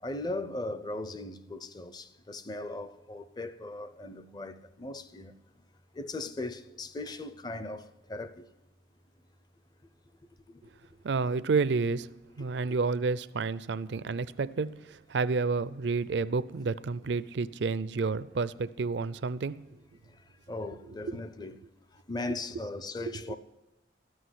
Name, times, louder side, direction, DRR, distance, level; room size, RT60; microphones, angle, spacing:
voice 1, 0.0-5.3 5.9-8.5 10.5-10.6 12.4-12.7 20.5-21.6 22.1-23.4, left 2 dB, 20° left, 0.5 m, -38 dB
voice 2, 11.0-12.1 12.4-19.6 23.3-23.4, right 4 dB, 65° right, 0.4 m, -30 dB
13.0 x 6.3 x 9.6 m
head